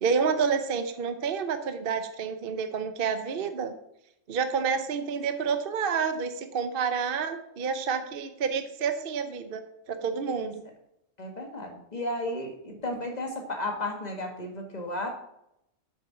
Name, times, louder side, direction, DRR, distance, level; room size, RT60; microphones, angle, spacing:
voice 1, 0.0-3.7 4.3-9.6 9.9-10.6, right 6 dB, 50° right, 9 dB, 0.8 m, -29 dB
voice 2, 11.2-15.1, left 1 dB, 30° left, 2 dB, 1.7 m, -33 dB
7.4 x 7.0 x 5.7 m, 0.81 s
omnidirectional pair, 1.6 m